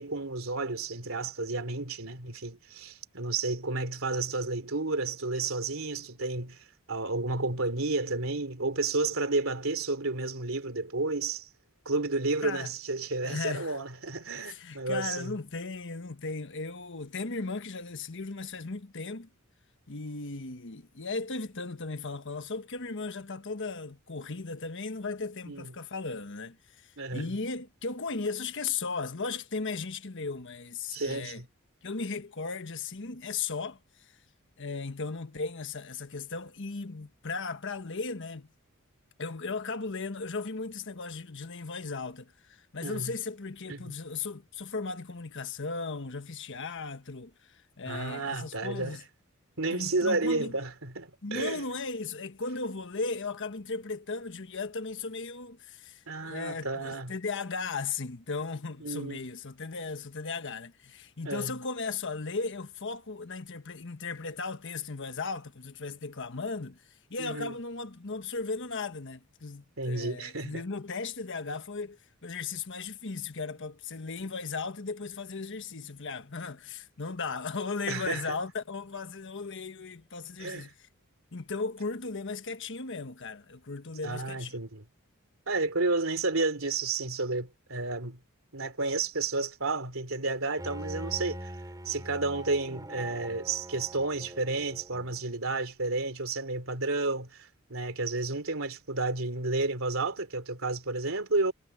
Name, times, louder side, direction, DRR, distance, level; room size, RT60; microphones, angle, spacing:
voice 1, 0.0-6.6 6.9-11.5 11.9-15.4 25.5-25.7 27.0-27.4 30.9-31.5 42.8-43.1 43.7-43.9 47.9-49.0 49.6-51.6 56.1-57.1 58.8-59.2 61.2-61.6 67.2-67.5 69.8-70.6 77.9-78.4 80.4-80.7 84.0-84.8 85.5-88.2 88.5-91.5 91.8-101.5, right 3 dB, 65° right, 3.8 m, -31 dB
voice 2, 13.2-13.8 14.3-19.3 19.9-31.4 31.8-34.1 34.6-38.5 39.2-49.0 49.7-50.6 51.2-66.8 67.1-80.7 81.3-84.6, left 4 dB, 60° left, 1.3 m, -36 dB
Bowed string instrument, 90.6-95.4, right 1 dB, 15° right, 4.9 m, -43 dB
head